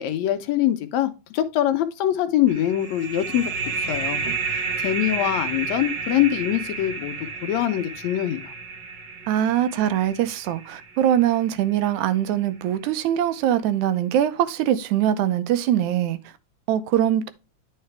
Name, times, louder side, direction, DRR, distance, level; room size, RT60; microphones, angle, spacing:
voice 1, 0.0-4.2 4.5-7.1 7.4-8.5, left 12 dB, 75° left, 1.9 m, -24 dB
sound 1, 2.5-11.8, right 4 dB, 65° right, 2.2 m, -31 dB
voice 2, 9.3-16.2 16.7-17.3, right 11 dB, 80° right, 2.1 m, -22 dB
9.6 x 4.8 x 3.3 m
omnidirectional pair, 3.4 m